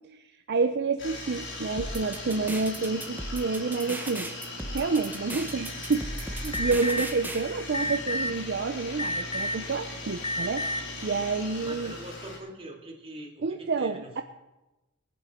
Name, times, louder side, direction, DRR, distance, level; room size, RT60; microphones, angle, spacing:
voice 1, 0.5-4.3 4.7-6.1 6.4-12.0 13.4-14.2, right 4 dB, 55° right, 7 dB, 0.6 m, -29 dB
sound 1, 1.0-12.4, left 2 dB, 60° left, 3.7 m, -39 dB
sound 2, 1.8-7.4, right 1 dB, 10° right, 0.9 m, -37 dB
Alarm, 6.5-7.0 7.7-8.3 9.0-9.6 10.2-10.8, left 1 dB, 25° left, 0.5 m, -30 dB
voice 2, 11.6-14.2, right 1 dB, 30° right, 0 dB, 2.5 m, -43 dB
21.5 x 8.5 x 4.3 m, 1.0 s
head